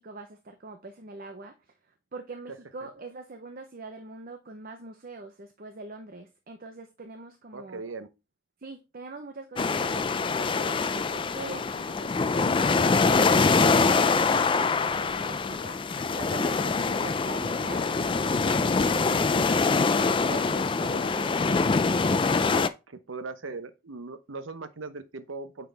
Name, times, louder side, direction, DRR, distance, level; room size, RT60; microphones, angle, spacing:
voice 1, 0.0-1.5 2.1-7.8 8.6-19.5 20.0-22.0, right 3 dB, 45° right, 0.8 m, -43 dB
voice 2, 7.5-8.1 20.8-21.1 22.9-25.7, right 3 dB, 75° right, 0.9 m, -39 dB
sound 1, 9.6-22.7, left 4 dB, 25° left, 0.4 m, -24 dB
9.0 x 4.5 x 3.4 m
head